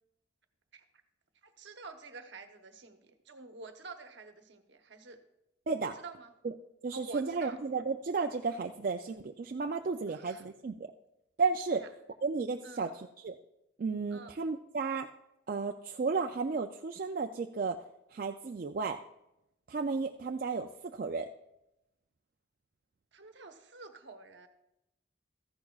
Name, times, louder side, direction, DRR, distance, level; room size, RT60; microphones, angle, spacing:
voice 1, 1.4-5.2 5.8-6.3 6.9-7.6 10.1-10.4 11.7-11.9 12.6-13.0 14.1-14.4 23.1-24.5, right 3 dB, 70° right, 6 dB, 1.0 m, -49 dB
voice 2, 6.8-10.9 11.4-11.8 12.2-13.4 13.8-15.1 15.5-17.8 18.1-19.0 19.7-21.3, right 4 dB, 50° right, 4 dB, 0.4 m, -33 dB
14.0 x 10.5 x 2.4 m, 0.87 s
head